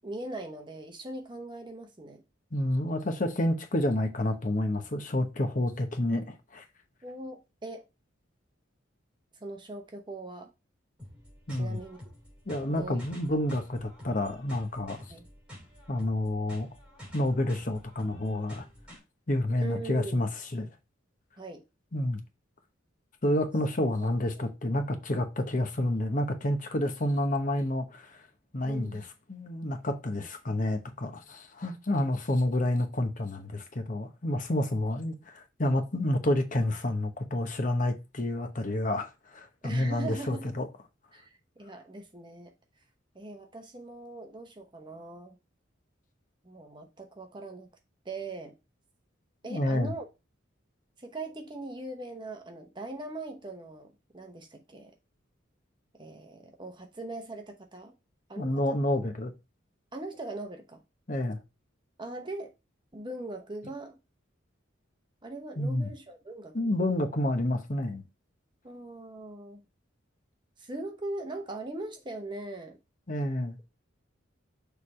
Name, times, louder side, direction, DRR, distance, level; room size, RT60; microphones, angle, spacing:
voice 1, 0.0-2.2 7.0-7.9 9.4-10.5 11.5-12.0 12.7-13.0 13.3-13.4 15.1-15.3 19.6-20.3 21.4-21.6 28.6-29.0 39.6-40.5 41.1-42.5 43.1-45.4 46.4-47.7 48.0-48.6 49.4-50.1 51.0-54.9 55.9-57.9 58.3-58.8 59.9-60.8 62.0-62.5 62.9-64.0 65.2-66.7 68.6-69.6 70.6-72.8, right 2 dB, 25° right, 0.9 m, -40 dB
voice 2, 2.5-6.6 11.5-11.8 12.5-15.0 15.9-16.7 17.1-18.7 19.3-20.7 21.9-22.2 23.2-28.2 28.5-29.0 29.3-40.7 49.5-49.9 58.4-59.3 61.1-61.4 65.6-65.9 66.5-68.0 73.1-73.6, left 1 dB, 40° left, 0.9 m, -29 dB
sound 1, 11.0-19.0, equal, 5° right, 3.1 m, -49 dB
6.6 x 3.4 x 4.3 m
head